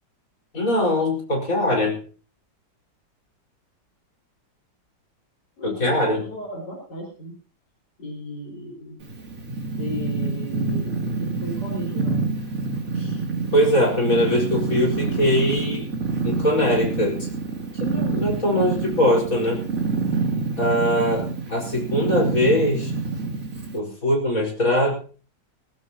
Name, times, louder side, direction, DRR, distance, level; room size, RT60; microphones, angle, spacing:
voice 1, 0.5-2.0 5.6-6.2 13.0-13.1 13.5-15.9 16.2-17.3 17.7-19.6 20.6-22.9 23.7-24.9, left 1 dB, 45° left, 0 dB, 5.1 m, -22 dB
voice 2, 5.6-7.3 8.0-9.0 9.8-11.0 11.2-12.2, left 1 dB, 65° left, -1 dB, 5.3 m, -35 dB
Purr, 9.0-23.8, right 4 dB, 45° right, 3.2 m, -27 dB
19.5 x 19.0 x 2.9 m, 0.39 s
omnidirectional pair, 2.0 m